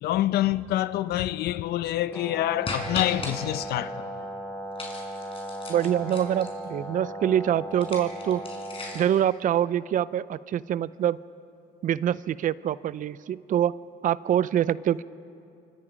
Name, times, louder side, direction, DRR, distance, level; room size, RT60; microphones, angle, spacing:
voice 1, 0.0-4.1, left 14 dB, 75° left, 0.7 m, -26 dB
Brass instrument, 2.1-9.1, right 1 dB, 10° left, 5.9 m, -37 dB
sound 1, 2.6-3.3 4.8-6.6 7.7-9.2, left 3 dB, 35° left, 4.9 m, -37 dB
voice 2, 5.7-8.4 8.9-11.2 11.8-13.7 14.0-15.0, right 10 dB, 50° right, 0.5 m, -25 dB
27.0 x 24.0 x 5.1 m
cardioid pair, 110°, 17 cm